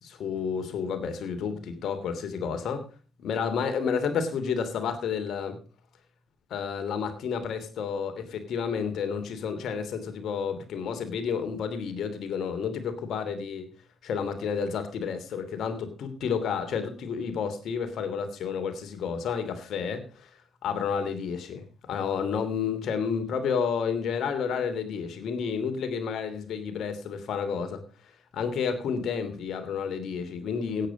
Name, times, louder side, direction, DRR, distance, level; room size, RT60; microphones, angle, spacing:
voice 1, 0.0-2.9 3.2-5.6 6.5-13.7 14.0-20.3 20.6-27.8 28.3-30.9, left 6 dB, 60° left, 2.9 m, -30 dB
17.0 x 9.3 x 5.1 m
hypercardioid pair, 40°, 0 cm